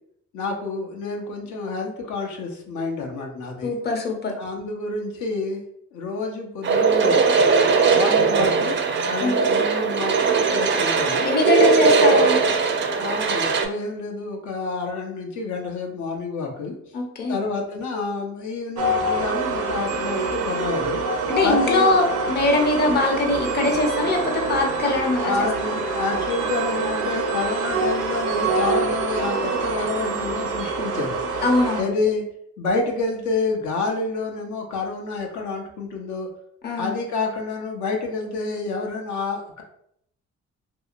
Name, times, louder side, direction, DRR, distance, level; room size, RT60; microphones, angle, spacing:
voice 1, 0.3-3.7 4.4-5.6 5.9-7.2 7.9-8.8 9.0-11.3 11.8-11.9 13.0-16.7 17.3-21.0 21.4-21.9 25.2-31.4 31.8-32.2 32.6-36.3 36.8-39.6, left 3 dB, 75° left, 1 dB, 0.7 m, -28 dB
voice 2, 3.6-4.3 9.2-9.3 11.2-12.4 16.9-17.4 21.3-25.5 31.4-31.8 36.6-36.9, left 2 dB, 35° left, 2 dB, 0.6 m, -22 dB
sound 1, 6.6-13.6, right 4 dB, 40° right, 0.4 m, -19 dB
sound 2, 18.8-31.8, right 3 dB, 85° right, 0.6 m, -25 dB
2.8 x 2.7 x 2.4 m, 0.70 s
cardioid pair, 90°, 30 cm